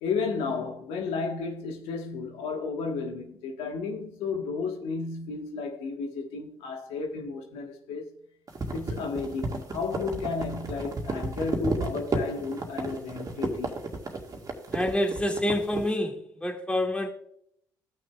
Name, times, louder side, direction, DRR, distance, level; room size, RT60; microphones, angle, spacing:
voice 1, 0.0-8.1 8.7-13.8, left 4 dB, 75° left, 1.3 m, -33 dB
sound 1, 8.5-15.9, right 3 dB, 35° right, 1.9 m, -32 dB
voice 2, 14.7-17.1, left 1 dB, 10° left, 2.1 m, -27 dB
16.5 x 6.2 x 2.3 m
hypercardioid pair, 65°, 10 cm